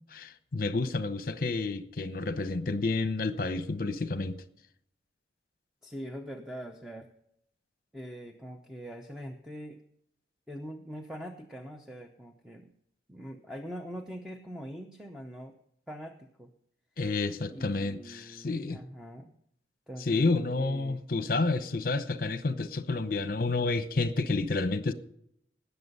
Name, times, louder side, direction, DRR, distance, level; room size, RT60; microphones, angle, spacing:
voice 1, 0.1-4.4 17.0-18.8 20.1-24.9, left 3 dB, 50° left, 0.8 m, -30 dB
voice 2, 5.8-7.1 7.9-9.8 10.5-12.7 13.1-15.5 15.9-16.5 17.5-19.3 19.9-21.0, equal, 5° right, 0.7 m, -43 dB
19.0 x 6.9 x 5.5 m
head